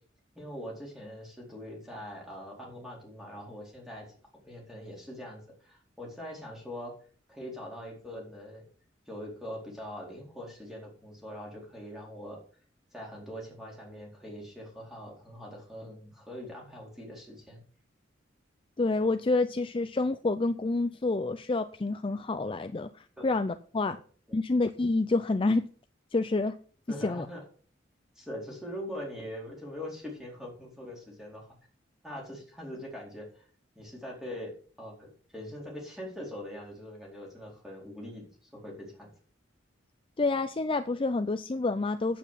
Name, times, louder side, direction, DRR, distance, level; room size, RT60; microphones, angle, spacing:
voice 1, 0.3-4.1 4.4-6.9 7.3-8.6 9.1-12.4 12.9-17.6 23.9-24.0 26.9-27.4 28.2-31.5 32.0-33.4 33.7-34.5 34.8-39.1, equal, ahead, -2 dB, 4.3 m, -42 dB
voice 2, 18.8-24.0 24.3-25.7 26.1-26.5 27.0-27.3 40.2-42.2, left 3 dB, 30° left, 10 dB, 0.5 m, -28 dB
8.9 x 8.5 x 5.8 m, 0.43 s
head